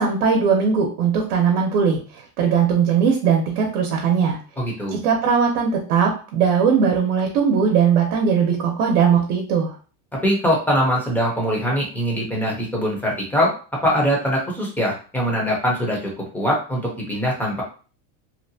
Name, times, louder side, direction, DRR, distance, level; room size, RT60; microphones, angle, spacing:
voice 1, 0.0-4.4 4.9-9.7, right 6 dB, 65° right, 1 dB, 0.8 m, -19 dB
voice 2, 4.6-5.0 10.2-13.5 13.8-17.6, equal, 5° left, -3 dB, 0.5 m, -22 dB
2.8 x 2.2 x 2.7 m, 0.38 s
supercardioid pair, 145°, 47 cm